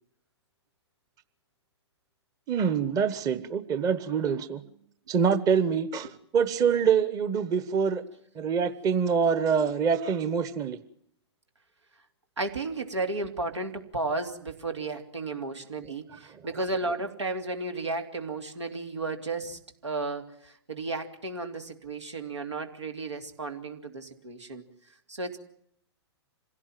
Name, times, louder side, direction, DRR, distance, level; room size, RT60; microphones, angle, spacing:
voice 1, 2.5-4.6 5.1-8.0 8.4-10.8, right 6 dB, 25° right, 12 dB, 1.1 m, -25 dB
voice 2, 12.4-24.6 25.1-25.4, right 3 dB, 85° right, 5 dB, 2.9 m, -33 dB
26.5 x 17.0 x 7.6 m, 0.73 s
hypercardioid pair, 120°, 14 cm